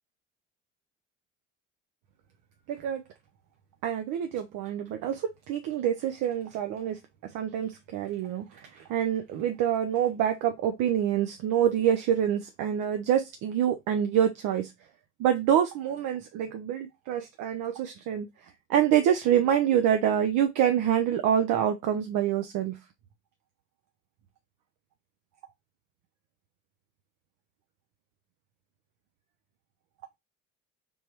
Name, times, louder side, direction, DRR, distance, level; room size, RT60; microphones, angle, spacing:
voice 1, 2.7-3.0 3.8-7.0 7.3-14.7 15.2-18.3 18.7-22.8, right 10 dB, 55° right, 0.7 m, -26 dB
3.5 x 2.9 x 4.4 m
hypercardioid pair, 55°, 38 cm